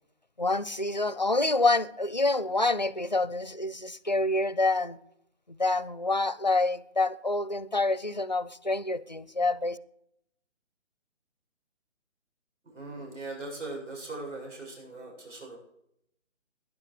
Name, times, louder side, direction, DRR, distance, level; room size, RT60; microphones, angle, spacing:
voice 1, 0.4-5.0 5.5-9.8, left 2 dB, 35° left, 0.4 m, -27 dB
voice 2, 12.6-15.6, right 2 dB, 75° right, 7.5 m, -40 dB
18.5 x 10.5 x 5.0 m
hypercardioid pair, 180°, 37 cm